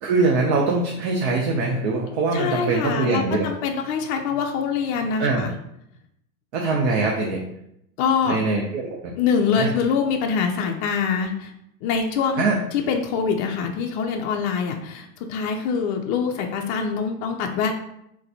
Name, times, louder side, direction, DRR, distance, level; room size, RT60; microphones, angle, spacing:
voice 1, 0.0-3.5 5.2-5.4 6.5-7.4 8.2-9.1 9.6-9.7 12.4-12.6, right 3 dB, 50° right, -1 dB, 0.7 m, -22 dB
voice 2, 2.3-5.5 8.0-8.4 9.2-11.5 11.8-17.7, left 6 dB, 45° left, 2 dB, 0.5 m, -24 dB
4.0 x 2.2 x 2.8 m, 0.78 s
hypercardioid pair, 105°, 47 cm